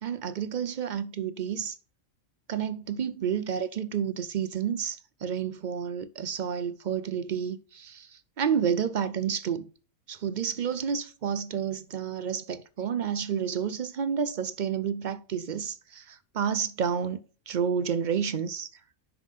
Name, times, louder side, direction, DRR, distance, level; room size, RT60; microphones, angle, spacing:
voice 1, 0.0-1.8 2.5-9.7 10.1-17.2 17.5-18.7, right 7 dB, 60° right, 0.5 m, -30 dB
10.5 x 5.8 x 3.5 m
omnidirectional pair, 1.4 m